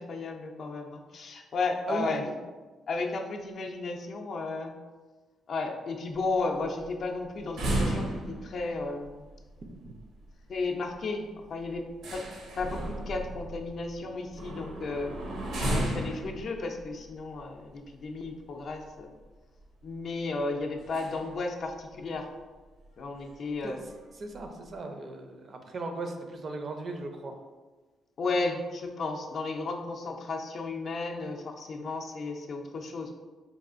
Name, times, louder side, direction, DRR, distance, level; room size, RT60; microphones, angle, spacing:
voice 1, 0.0-2.4 2.9-4.7 5.5-9.2 10.5-11.8 12.1-12.3 12.5-15.1 15.6-19.1 19.8-22.3 23.0-23.8 28.2-33.1, left 3 dB, 55° left, 3 dB, 0.4 m, -34 dB
voice 2, 1.9-2.2 9.7-9.9 23.6-23.8 24.2-27.3, right 2 dB, 45° right, 4 dB, 0.4 m, -37 dB
sound 1, 6.1-18.8 19.2-19.3 19.6-19.8 20.8-21.4 21.7-21.8 22.1-22.2 22.8-22.9 23.2-23.5 23.9-24.6, right 1 dB, 80° right, 0.7 m, -35 dB
4.1 x 2.4 x 2.5 m, 1.3 s
cardioid pair, 90°, 0 cm